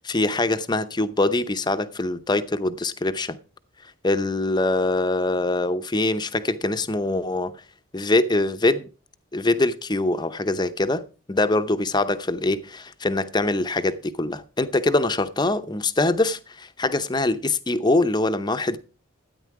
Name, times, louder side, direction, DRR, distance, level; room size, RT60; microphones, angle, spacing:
voice 1, 0.0-3.4 4.0-7.5 7.9-8.9 9.3-18.8, left 2 dB, 20° left, 0.7 m, -23 dB
13.0 x 9.3 x 4.8 m
head